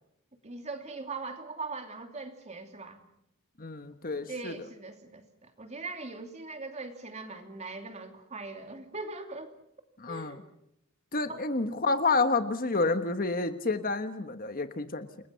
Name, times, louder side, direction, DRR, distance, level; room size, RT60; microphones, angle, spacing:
voice 1, 0.4-3.0 4.3-9.5 10.1-10.4 11.3-11.5, right 3 dB, 30° right, 6 dB, 2.8 m, -41 dB
voice 2, 3.6-4.5 10.0-10.4 11.1-15.1, left 3 dB, 40° left, 9 dB, 1.4 m, -29 dB
29.5 x 21.5 x 5.8 m, 0.76 s
head